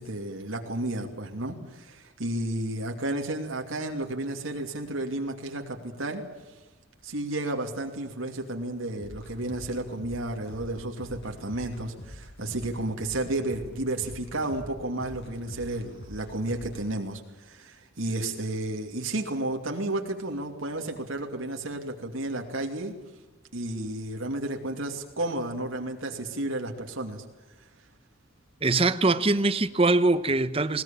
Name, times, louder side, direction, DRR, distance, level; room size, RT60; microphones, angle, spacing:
voice 1, 0.0-6.2 7.0-17.2 17.5-22.9 23.5-27.2, right 1 dB, 80° right, 2.7 m, -32 dB
sound 1, 9.0-16.8, left 1 dB, 55° left, 6.2 m, -45 dB
voice 2, 28.6-30.8, right 2 dB, 25° right, 0.9 m, -22 dB
20.5 x 19.5 x 8.9 m
head